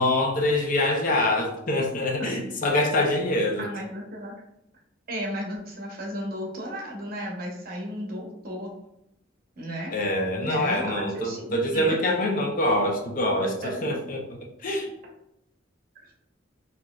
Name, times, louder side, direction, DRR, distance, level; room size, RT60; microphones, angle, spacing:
voice 1, 0.0-3.6 9.9-14.9, left 1 dB, 45° left, 1 dB, 0.5 m, -25 dB
voice 2, 3.6-4.3 5.1-8.7 9.6-9.9 10.4-12.0 13.4-13.8 15.9-16.1, equal, 50° right, -2 dB, 0.9 m, -34 dB
4.0 x 2.7 x 2.3 m, 0.82 s
head